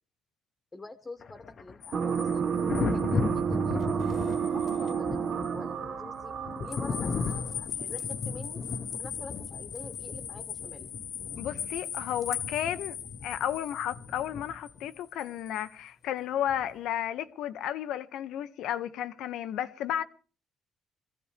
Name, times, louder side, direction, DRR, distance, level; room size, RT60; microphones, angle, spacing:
voice 1, 0.7-2.4 2.7-6.3 6.6-8.6 8.9-10.9, left 2 dB, 20° left, 1.2 m, -46 dB
Thunder, 1.2-14.9 16.5-16.7, left 5 dB, 40° left, 0.8 m, -37 dB
sound 1, 1.8-5.0 5.4-5.5 6.7-15.7, left 8 dB, 55° left, 1.3 m, -40 dB
sound 2, 1.9-7.5, right 6 dB, 50° right, 1.1 m, -30 dB
voice 2, 11.4-13.0 13.2-20.0, left 11 dB, 85° left, 0.8 m, -33 dB
22.5 x 15.5 x 3.4 m
cardioid pair, 140°, 0 cm